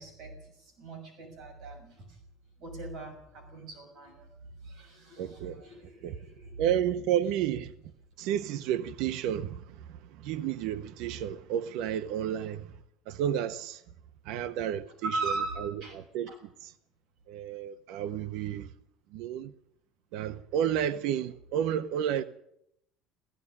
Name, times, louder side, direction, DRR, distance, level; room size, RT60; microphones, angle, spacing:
voice 1, 0.0-2.1 2.6-4.3 4.6-6.6 15.1-15.9 16.3-16.4, right 3 dB, 50° right, 6.5 m, -39 dB
voice 2, 5.2-5.6 6.0-6.1 6.6-7.7 8.2-12.7 13.1-13.8 14.2-15.3 15.6-16.3 16.6-16.7 17.3-18.7 19.1-19.5 20.1-22.2, right 10 dB, 65° right, 1.0 m, -31 dB
16.5 x 16.5 x 9.8 m
cardioid pair, 155°, 0 cm